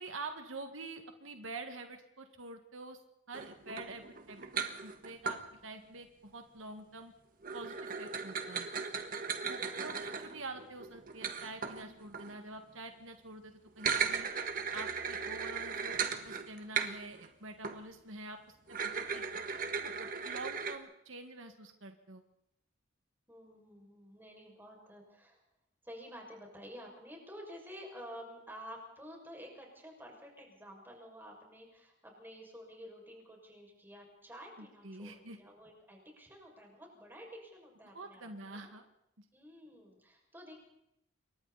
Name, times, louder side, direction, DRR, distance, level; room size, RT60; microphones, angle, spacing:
voice 1, 0.0-3.0 3.3-4.5 4.8-7.1 7.5-8.7 9.4-14.3 14.7-16.0 16.2-18.4 18.7-19.4 20.0-22.2 34.6-35.4 37.9-38.8 39.2-39.3, right 3 dB, 80° right, 5 dB, 2.0 m, -47 dB
sound 1, 3.3-5.4 7.4-12.4 13.7-17.3 17.6-17.8 18.7-20.8, right 6 dB, 45° right, 1.7 m, -37 dB
voice 2, 9.7-10.1 23.3-25.4 25.8-38.7 39.3-40.5, equal, 10° right, 0 dB, 6.5 m, -51 dB
28.0 x 23.5 x 4.3 m, 0.81 s
head